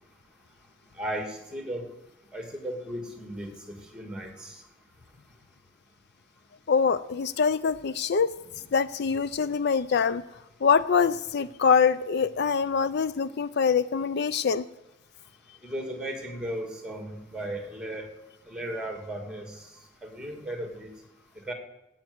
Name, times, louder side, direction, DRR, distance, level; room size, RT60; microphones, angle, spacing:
voice 1, 1.0-1.8 2.3-3.5 3.9-4.5 15.6-18.1 18.5-19.5 20.0-20.9 21.5-21.6, right 1 dB, 5° right, 4 dB, 2.5 m, -35 dB
voice 2, 6.7-8.3 8.7-10.2 10.6-14.6, left 6 dB, 55° left, 15 dB, 0.5 m, -24 dB
15.5 x 9.3 x 8.1 m, 0.93 s
head